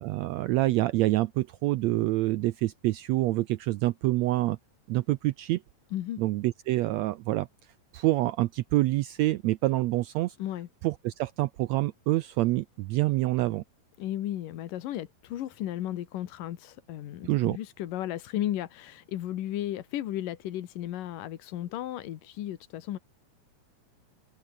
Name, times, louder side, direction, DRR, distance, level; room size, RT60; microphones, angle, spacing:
voice 1, 0.0-4.6 4.9-5.6 6.2-7.5 7.9-10.4 10.8-13.6 17.2-17.6, right 17 dB, 80° right, 1.5 m, -26 dB
voice 2, 5.9-6.2 10.4-10.7 14.0-23.0, left 12 dB, 85° left, 3.0 m, -34 dB
open air
omnidirectional pair, 3.7 m